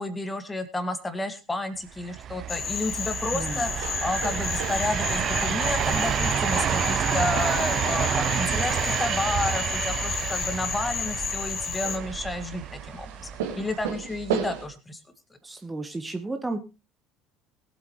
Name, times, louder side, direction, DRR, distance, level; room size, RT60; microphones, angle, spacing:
voice 1, 0.0-13.1 13.6-15.0, left 2 dB, 15° left, 10 dB, 2.0 m, -31 dB
sound 1, 2.0-13.9, right 9 dB, 45° right, 0.7 m, -29 dB
Cricket / Frog, 2.5-12.0, left 7 dB, 40° left, 1.2 m, -32 dB
voice 2, 3.3-3.6 15.4-16.6, right 2 dB, 15° right, 6 dB, 1.3 m, -33 dB
sound 2, 3.5-14.7, right 8 dB, 70° right, 2.2 m, -39 dB
21.0 x 8.1 x 3.2 m, 0.29 s
figure-of-eight pair, 60°, 0 cm